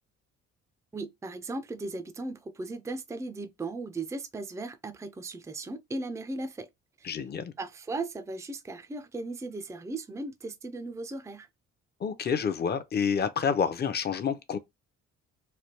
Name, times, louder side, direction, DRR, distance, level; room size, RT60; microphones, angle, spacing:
voice 1, 0.9-6.7 7.0-7.2 7.6-11.5, right 2 dB, 10° right, 0.4 m, -37 dB
voice 2, 7.0-7.5 12.0-14.6, left 7 dB, 35° left, 0.6 m, -28 dB
3.3 x 2.3 x 4.4 m
cardioid pair, 90°, 30 cm